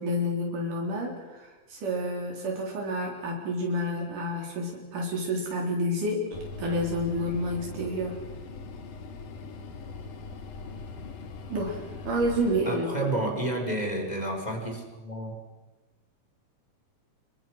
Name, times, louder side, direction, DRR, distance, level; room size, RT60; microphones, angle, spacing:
voice 1, 0.0-8.2 11.5-13.1, equal, 80° right, -1 dB, 5.4 m, -29 dB
sound 1, 6.3-12.7, left 4 dB, 80° left, 3.4 m, -41 dB
voice 2, 12.6-15.4, right 1 dB, 10° left, 2 dB, 4.7 m, -30 dB
28.0 x 22.5 x 6.4 m, 1.2 s
omnidirectional pair, 3.6 m